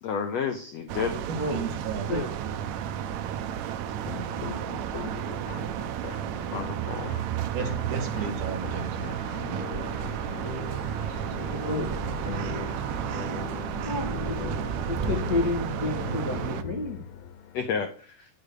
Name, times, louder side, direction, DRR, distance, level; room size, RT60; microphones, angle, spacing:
voice 1, 0.0-1.1 6.5-7.1 17.5-18.3, left 6 dB, 70° left, 6 dB, 1.6 m, -31 dB
sound 1, 0.9-16.6, right 10 dB, 85° right, 1.6 m, -32 dB
voice 2, 1.3-2.2 7.5-9.2, right 5 dB, 65° right, 4 dB, 2.7 m, -34 dB
sound 2, 4.1-17.7, left 6 dB, 85° left, 3.0 m, -39 dB
sound 3, 9.6-15.7, right 4 dB, 15° right, 3.5 m, -39 dB
voice 3, 11.4-11.9 13.8-14.5 14.9-17.0, left 2 dB, 30° left, 0 dB, 1.8 m, -30 dB
10.5 x 6.7 x 6.7 m, 0.42 s
omnidirectional pair, 4.2 m